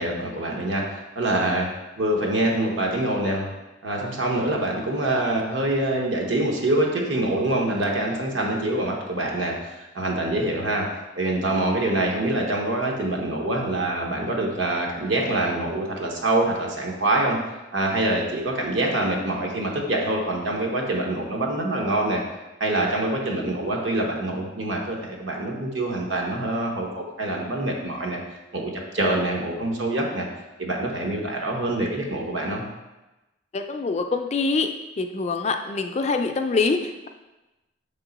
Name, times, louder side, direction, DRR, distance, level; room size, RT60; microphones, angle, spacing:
voice 1, 0.0-1.7 2.0-3.5 3.8-10.9 11.2-17.4 17.7-22.2 22.6-28.2 28.5-30.3 30.6-32.7, right 1 dB, 75° right, 0 dB, 1.1 m, -25 dB
voice 2, 33.5-36.8, left 4 dB, 35° left, 6 dB, 0.3 m, -25 dB
6.5 x 3.7 x 4.0 m, 1.0 s
head